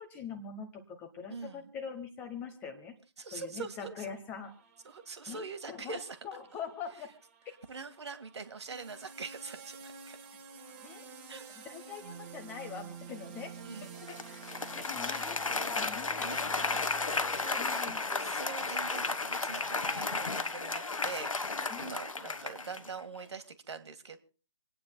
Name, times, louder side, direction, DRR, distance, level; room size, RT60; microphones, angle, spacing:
voice 1, 0.0-2.9 3.3-4.5 5.3-5.4 5.7-6.0 6.2-7.1 7.4-7.5 10.8-11.0 11.6-13.5 14.1-14.4 14.7-16.3 17.6-18.0 21.7-21.9, left 6 dB, 10° left, 7 dB, 1.0 m, -43 dB
voice 2, 1.3-1.7 3.2-4.1 4.8-6.2 7.7-10.2 11.3-11.4 13.6-14.0 14.3-14.4 15.0-15.3 16.2-16.4 16.7-16.8 17.2-24.2, right 4 dB, 55° right, 9 dB, 1.7 m, -44 dB
sound 1, 4.4-17.5, right 5 dB, 20° right, 1.4 m, -50 dB
Applause, 14.1-23.0, left 3 dB, 75° left, 1.3 m, -33 dB
27.0 x 9.5 x 2.2 m, 0.37 s
figure-of-eight pair, 155°, 17 cm